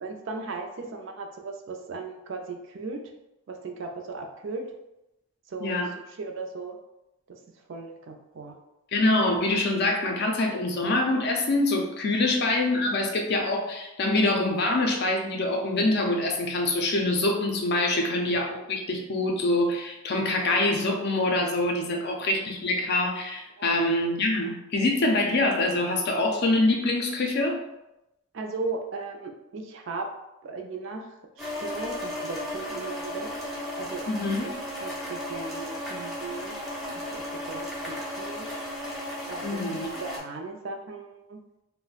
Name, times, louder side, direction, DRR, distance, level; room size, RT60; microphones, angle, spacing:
voice 1, 0.0-3.0 3.5-4.7 5.5-5.8 6.2-6.8 7.3-7.4 7.7-8.6 17.9-18.0 21.9-22.2 23.6-23.8 28.3-30.1 30.4-31.1 31.4-33.4 33.8-34.0 34.4-34.5 34.8-38.6 39.3-41.4, right 3 dB, 55° right, 3 dB, 0.4 m, -37 dB
voice 2, 8.9-27.6 34.1-34.5 39.4-39.9, left 2 dB, 45° left, 1 dB, 0.5 m, -25 dB
sound 1, 31.4-40.2, left 1 dB, ahead, 0.6 m, -35 dB
2.4 x 2.1 x 3.9 m, 0.91 s
head